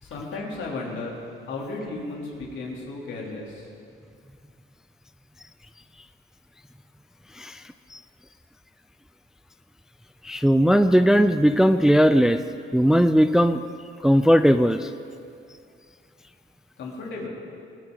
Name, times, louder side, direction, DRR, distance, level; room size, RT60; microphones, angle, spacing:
voice 1, 0.0-1.2 1.4-3.7 16.8-17.3, left 3 dB, 70° left, -3 dB, 3.2 m, -34 dB
voice 2, 10.2-12.4 12.7-13.6 14.0-14.9, equal, 5° right, 10 dB, 0.4 m, -18 dB
20.5 x 11.0 x 3.9 m, 2.4 s
cardioid pair, 90°, 20 cm